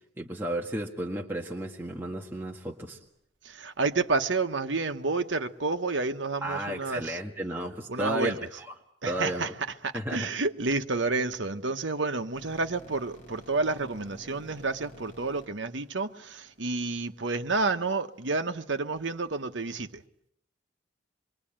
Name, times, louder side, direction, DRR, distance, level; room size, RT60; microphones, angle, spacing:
voice 1, 0.2-3.0 6.4-8.7 9.0-9.5 9.9-10.3, right 1 dB, 10° right, 1.7 m, -33 dB
voice 2, 3.4-7.2 7.9-8.4 9.0-9.5 9.8-20.0, right 3 dB, 70° right, 1.2 m, -30 dB
sound 1, 12.3-16.9, equal, 40° left, 4.9 m, -51 dB
26.0 x 22.5 x 8.9 m
head